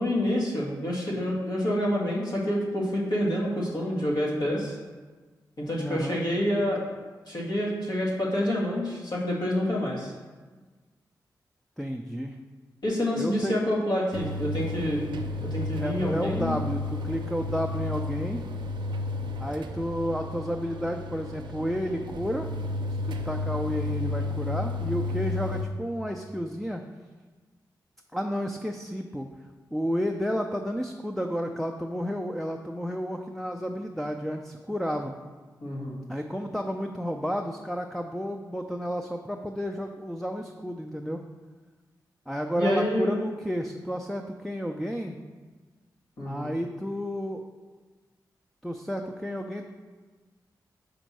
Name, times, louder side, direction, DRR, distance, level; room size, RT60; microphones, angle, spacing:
voice 1, 0.0-4.8 5.6-6.8 7.3-10.1 12.8-15.0 15.4-16.5 35.6-35.9 42.6-43.1 46.2-46.5, left 1 dB, 65° left, -4 dB, 2.0 m, -27 dB
voice 2, 5.8-6.2 11.8-12.3 13.2-13.6 15.8-18.4 19.4-22.5 23.0-26.8 28.1-29.3 29.7-35.1 36.1-41.2 42.3-45.2 46.2-47.5 48.6-49.6, equal, ahead, 3 dB, 0.5 m, -31 dB
sound 1, 14.1-25.6, left 2 dB, 80° right, 0.5 m, -32 dB
5.1 x 4.4 x 6.1 m, 1.3 s
cardioid pair, 45°, 8 cm